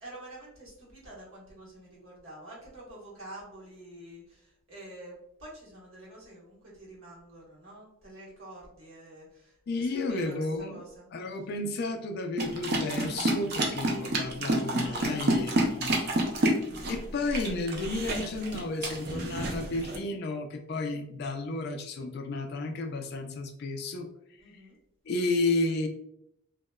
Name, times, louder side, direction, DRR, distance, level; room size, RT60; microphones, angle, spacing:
voice 1, 0.0-11.1 15.0-16.0 24.4-24.7, right 1 dB, 85° right, -6 dB, 1.2 m, -48 dB
voice 2, 9.7-10.8 11.1-16.1 16.9-24.1 25.1-25.9, left 2 dB, 50° left, 5 dB, 0.3 m, -32 dB
sound 1, 12.4-20.0, right 1 dB, 50° right, 0.5 m, -29 dB
2.9 x 2.1 x 2.2 m, 0.77 s
head